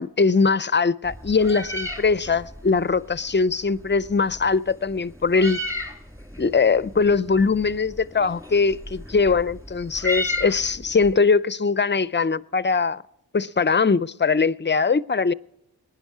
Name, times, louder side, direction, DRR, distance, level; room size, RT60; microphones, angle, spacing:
voice 1, 0.0-5.6 6.4-13.0 13.3-15.3, left 4 dB, 30° left, 0.4 m, -21 dB
Meow, 1.0-11.1, left 1 dB, 10° right, 2.3 m, -35 dB
21.0 x 10.0 x 4.8 m
wide cardioid pair, 50°, 38 cm